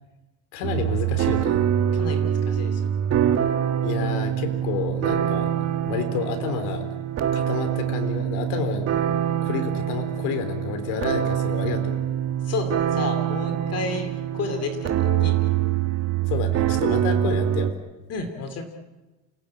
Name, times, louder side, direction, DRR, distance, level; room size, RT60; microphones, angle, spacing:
voice 1, 0.5-1.7 3.8-5.5 5.9-6.8 7.3-8.9 9.4-12.0 16.3-17.7, left 6 dB, 75° left, 7 dB, 4.2 m, -30 dB
sound 1, 0.6-17.7, right 10 dB, 35° right, 1.6 m, -24 dB
voice 2, 1.9-2.9 12.4-15.4 18.1-18.6, left 4 dB, 35° left, 7 dB, 2.7 m, -31 dB
29.0 x 17.5 x 8.9 m, 1.2 s
cardioid pair, 165°, 44 cm